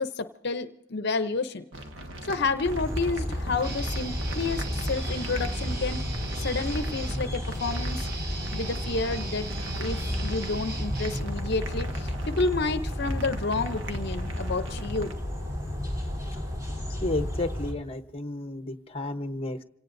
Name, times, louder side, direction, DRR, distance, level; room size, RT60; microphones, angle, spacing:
voice 1, 0.0-1.6 2.2-6.0 6.3-8.1 8.5-9.5 9.8-15.1, left 3 dB, 60° left, 10 dB, 0.7 m, -30 dB
sound 1, 1.7-15.1, right 1 dB, 80° right, 1.4 m, -41 dB
sound 2, 2.7-17.7, left 1 dB, 15° right, 3.3 m, -32 dB
Guitar, 3.6-11.7, right 3 dB, 55° right, 1.0 m, -39 dB
voice 2, 17.0-19.6, left 2 dB, 30° left, 7 dB, 0.9 m, -32 dB
27.0 x 18.0 x 2.6 m, 0.81 s
head